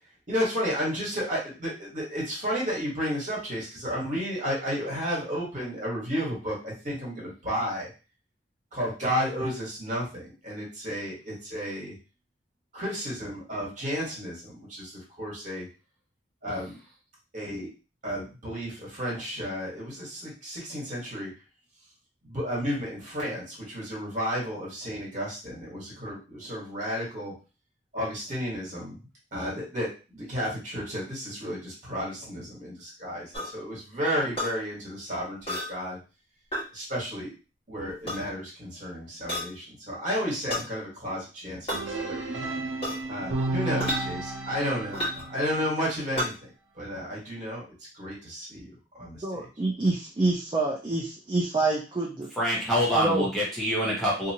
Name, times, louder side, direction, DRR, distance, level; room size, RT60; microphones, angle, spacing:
voice 1, 0.3-7.9 8.7-11.9 12.7-15.7 16.4-16.8 17.3-17.7 18.0-21.3 22.2-27.3 27.9-29.0 29.3-36.0 36.7-37.3 37.7-42.2 43.1-46.3 46.8-47.6 47.9-49.5, equal, 45° right, -4 dB, 1.5 m, -32 dB
sound 1, 33.3-33.5 34.4-34.5 35.5-35.7 36.5-36.7 37.9-38.2 39.3-39.5 40.5-40.7 41.7-41.8 42.8-43.1 43.8-44.0 44.9-45.3 46.2-46.3, left 1 dB, 35° left, 1.4 m, -30 dB
sound 2, 41.7-45.8, right 2 dB, 85° right, 0.6 m, -33 dB
voice 2, 49.2-52.3 52.9-53.2, right 2 dB, 25° right, -3 dB, 0.5 m, -27 dB
voice 3, 52.4-54.3, equal, ahead, -5 dB, 0.8 m, -25 dB
2.7 x 2.4 x 2.8 m, 0.32 s
head